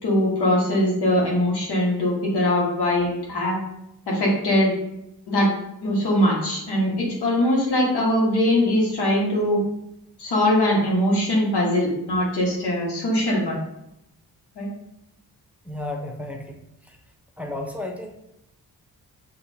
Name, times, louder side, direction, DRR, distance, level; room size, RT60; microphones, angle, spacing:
voice 1, 0.0-3.6 4.1-4.7 5.3-5.5 5.8-9.6 10.2-13.6 14.6-14.7, left 1 dB, 85° left, -4 dB, 1.6 m, -21 dB
voice 2, 15.6-16.5 17.4-18.1, left 1 dB, 5° right, 1 dB, 0.9 m, -32 dB
6.3 x 2.9 x 2.8 m, 0.83 s
supercardioid pair, 50°, 39 cm